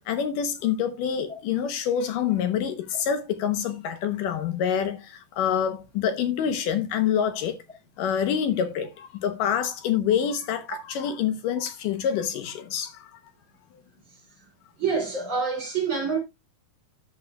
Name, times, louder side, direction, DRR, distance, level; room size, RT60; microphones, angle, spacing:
voice 1, 0.1-7.6 8.0-13.2, left 8 dB, 75° left, 2.4 m, -26 dB
voice 2, 14.8-16.2, right 5 dB, 35° right, 4.0 m, -26 dB
11.5 x 8.0 x 2.3 m
omnidirectional pair, 4.1 m